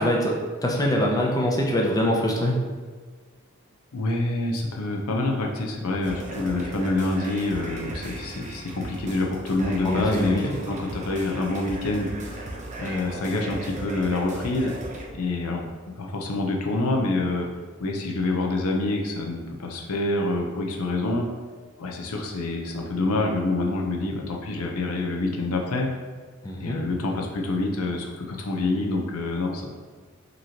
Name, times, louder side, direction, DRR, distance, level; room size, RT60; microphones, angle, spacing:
voice 1, 0.0-2.5 9.8-10.5 26.4-26.8, left 1 dB, 15° left, -1 dB, 0.5 m, -24 dB
voice 2, 3.9-14.7 15.1-15.7 16.0-17.5 17.8-21.3 21.8-25.9 26.6-29.7, left 2 dB, 85° left, 1 dB, 0.6 m, -27 dB
sound 1, 6.0-15.1, right 1 dB, 35° right, 0.6 m, -37 dB
5.2 x 2.9 x 2.9 m, 1.5 s
head